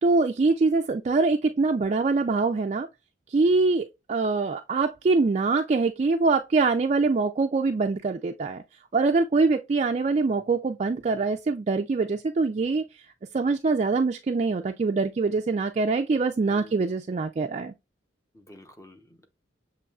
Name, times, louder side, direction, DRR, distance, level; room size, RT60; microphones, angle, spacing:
voice 1, 0.0-2.9 3.3-8.6 8.9-13.1 13.3-17.7, right 3 dB, 35° right, 0.3 m, -24 dB
voice 2, 16.4-17.0 18.3-19.3, left 1 dB, 15° left, 0.7 m, -50 dB
6.9 x 3.0 x 2.3 m
head